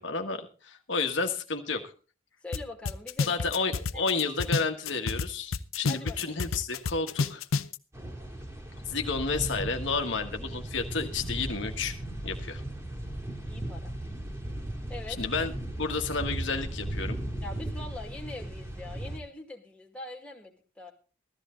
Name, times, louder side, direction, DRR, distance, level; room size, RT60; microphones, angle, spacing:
voice 1, 0.0-1.8 3.3-7.4 8.8-12.0 12.2-12.6 15.1-17.2, left 4 dB, 65° left, 4 dB, 1.5 m, -31 dB
voice 2, 2.4-3.5 3.9-4.2 5.9-6.3 13.4-13.9 14.9-15.2 17.4-20.9, left 2 dB, 5° left, -1 dB, 2.1 m, -43 dB
sound 1, 2.5-2.6 2.9-5.3 5.5-7.8, left 4 dB, 90° left, 0.7 m, -29 dB
sound 2, 7.9-19.2, right 1 dB, 15° right, 2.2 m, -37 dB
15.0 x 13.5 x 3.8 m, 0.36 s
head